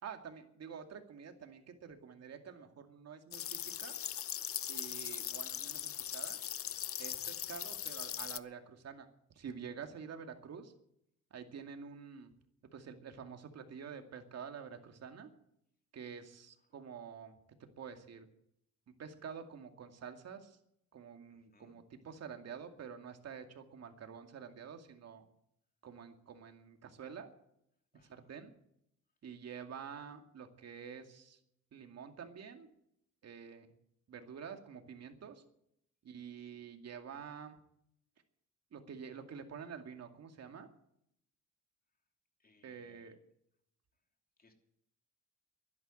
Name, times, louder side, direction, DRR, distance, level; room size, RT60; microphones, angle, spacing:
voice 1, 0.0-4.0 4.7-6.4 7.0-9.1 9.4-10.7 11.3-12.3 12.7-15.3 15.9-17.3 17.8-18.3 19.0-20.6 20.9-25.2 25.8-27.3 28.0-28.5 29.2-31.4 31.7-32.7 33.2-33.7 34.1-35.4 36.0-37.6 38.7-40.7 42.6-43.2, right 7 dB, 55° right, 6 dB, 2.3 m, -48 dB
sound 1, 3.3-8.4, left 10 dB, 50° left, 0.7 m, -40 dB
voice 2, 21.3-21.8 27.9-28.3 36.4-36.6 42.4-43.1 44.4-44.5, left 3 dB, 30° left, 4 dB, 3.0 m, -69 dB
12.0 x 11.0 x 9.1 m, 0.75 s
cardioid pair, 90°, 30 cm